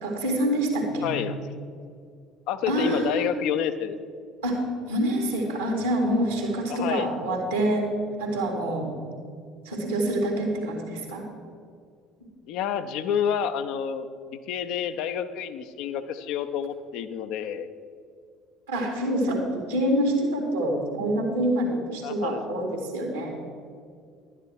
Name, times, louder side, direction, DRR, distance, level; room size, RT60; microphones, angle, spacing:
voice 1, 0.0-1.1 2.7-3.3 4.4-7.9 8.2-8.9 9.6-11.3 18.7-23.3, right 1 dB, 80° right, 1 dB, 2.2 m, -26 dB
voice 2, 1.0-1.4 2.5-3.9 6.7-7.1 12.5-17.7 22.0-22.4, left 8 dB, 60° left, 9 dB, 0.6 m, -29 dB
11.5 x 9.9 x 4.8 m, 2.3 s
figure-of-eight pair, 60°, 0 cm